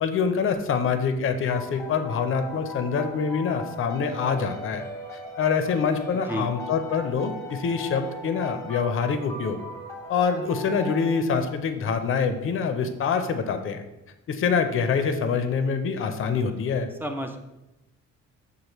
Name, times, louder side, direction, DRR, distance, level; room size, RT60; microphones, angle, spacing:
voice 1, 0.0-4.9 5.4-9.6 10.1-13.8 14.3-16.9, left 6 dB, 45° left, 8 dB, 0.5 m, -25 dB
sound 1, 1.5-11.9, equal, 10° left, 0.8 m, -39 dB
voice 2, 17.0-17.4, equal, 5° right, 5 dB, 0.4 m, -30 dB
6.4 x 2.5 x 3.0 m, 0.97 s
cardioid pair, 90°, 30 cm